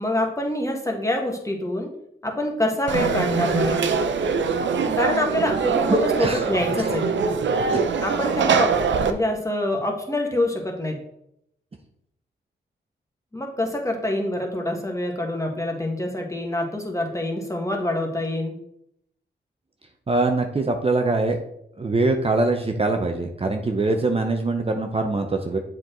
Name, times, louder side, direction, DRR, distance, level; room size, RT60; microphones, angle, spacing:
voice 1, 0.0-1.9 2.2-3.9 5.0-7.1 8.0-8.7 9.0-11.0 13.3-18.6, left 1 dB, 15° left, 1 dB, 1.7 m, -26 dB
Conversation / Crowd, 2.9-9.1, right 5 dB, 75° right, 0.6 m, -23 dB
voice 2, 5.9-6.4 6.8-6.9 7.7-7.8 20.1-21.4 21.8-25.6, right 2 dB, 30° right, 4 dB, 0.8 m, -23 dB
7.3 x 4.6 x 3.9 m, 0.74 s
cardioid pair, 60°, 19 cm